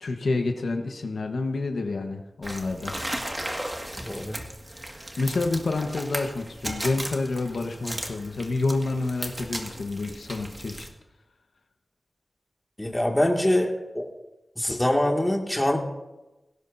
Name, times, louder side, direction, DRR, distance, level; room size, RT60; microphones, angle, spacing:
voice 1, 0.0-2.9 5.2-10.9, left 3 dB, 85° left, 4 dB, 1.2 m, -28 dB
sound 1, 2.4-10.9, right 1 dB, 25° right, 1.9 m, -36 dB
voice 2, 4.0-4.4 12.8-14.1 14.6-15.8, left 1 dB, 15° left, 1 dB, 2.1 m, -24 dB
17.0 x 17.0 x 2.7 m, 1.0 s
wide cardioid pair, 60°, 0 cm